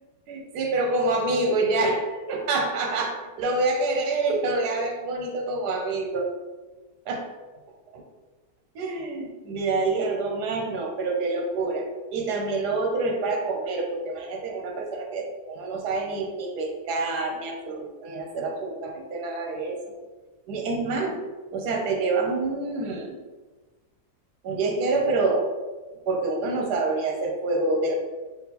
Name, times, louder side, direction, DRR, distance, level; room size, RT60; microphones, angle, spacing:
voice 1, 0.3-6.3 7.1-7.3 7.9-8.0 8.7-19.8 20.5-21.2 21.5-23.2 24.4-25.5 26.1-27.9, right 3 dB, 80° right, 2 dB, 1.3 m, -27 dB
3.7 x 2.5 x 4.0 m, 1.2 s
omnidirectional pair, 1.7 m